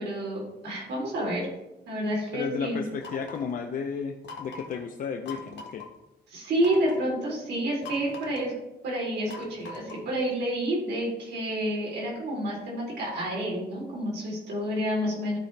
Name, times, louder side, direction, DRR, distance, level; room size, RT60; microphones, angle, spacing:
voice 1, 0.0-1.5 1.9-2.8 6.3-8.5 8.8-15.4, right 1 dB, 75° right, -3 dB, 3.3 m, -29 dB
voice 2, 2.3-5.8, left 6 dB, 50° left, 4 dB, 0.6 m, -33 dB
sound 1, 3.0-3.5 4.2-4.8 5.3-5.9 6.6-7.1 7.8-8.5 9.3-10.1, left 4 dB, 80° left, 1.4 m, -42 dB
14.0 x 5.1 x 3.3 m, 0.98 s
cardioid pair, 160°, 18 cm